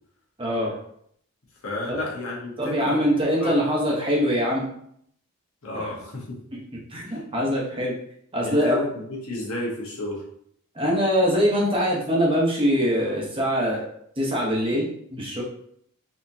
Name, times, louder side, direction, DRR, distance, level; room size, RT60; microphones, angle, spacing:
voice 1, 0.4-0.8 1.9-2.0 2.6-4.7 5.7-5.8 6.9-7.9 8.3-8.8 10.7-13.8 14.2-15.4, equal, 25° right, -4 dB, 0.9 m, -23 dB
voice 2, 1.6-3.0 3.4-3.7 5.6-6.4 6.9-7.2 8.4-10.2, left 1 dB, 70° left, -3 dB, 1.1 m, -32 dB
4.0 x 2.9 x 2.7 m, 0.69 s
head